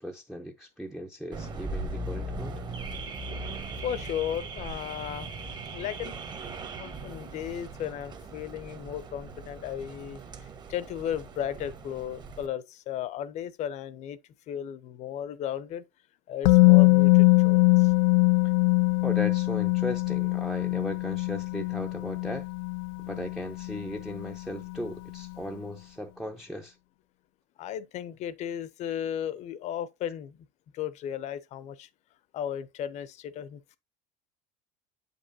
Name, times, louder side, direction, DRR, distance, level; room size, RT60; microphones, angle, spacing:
voice 1, 0.0-2.6 18.4-18.5 19.0-22.5 23.1-26.8, equal, ahead, 0.6 m, -37 dB
Car / Alarm, 1.3-12.5, right 2 dB, 30° right, 1.0 m, -39 dB
voice 2, 3.8-5.3 5.6-6.2 6.8-14.2 14.5-15.8 16.3-17.9 27.6-30.5 30.7-31.9 32.3-33.8, left 10 dB, 50° left, 0.7 m, -35 dB
Musical instrument, 16.4-24.3 24.6-24.8, left 27 dB, 85° left, 0.4 m, -22 dB
8.1 x 5.4 x 2.7 m
cardioid pair, 135°, 15 cm